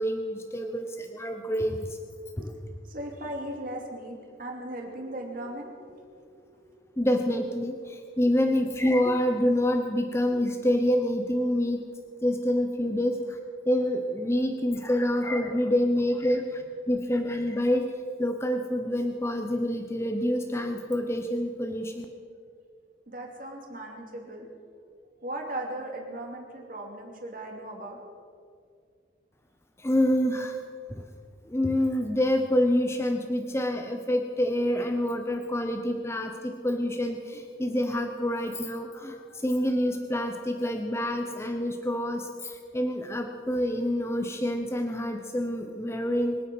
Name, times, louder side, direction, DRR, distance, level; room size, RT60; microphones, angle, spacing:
voice 1, 0.0-2.0 2.4-2.5 7.0-11.8 12.2-13.4 13.7-17.9 18.2-22.0 29.8-30.6 30.9-31.0 31.5-46.4, left 1 dB, 15° left, 4 dB, 0.8 m, -27 dB
voice 2, 2.8-6.7 23.1-24.5 25.2-28.0, right 1 dB, 45° right, 1 dB, 2.8 m, -38 dB
24.0 x 9.2 x 6.3 m, 2.2 s
head